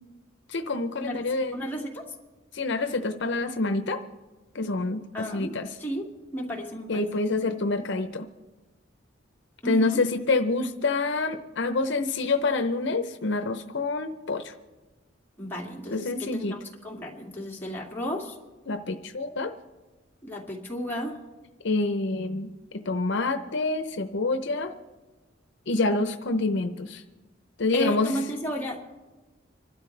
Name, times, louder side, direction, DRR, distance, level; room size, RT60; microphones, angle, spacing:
voice 1, 0.5-1.6 2.5-4.0 4.5-5.7 6.9-8.3 9.6-14.5 15.9-16.6 18.7-19.5 21.6-24.7 25.7-27.0 27.6-28.2, left 3 dB, 65° left, 8 dB, 0.7 m, -27 dB
voice 2, 1.5-2.0 5.1-7.2 9.6-10.0 15.4-18.3 20.2-21.2 27.7-28.8, equal, 10° left, -3 dB, 2.3 m, -33 dB
26.0 x 12.5 x 3.3 m, 1.2 s
head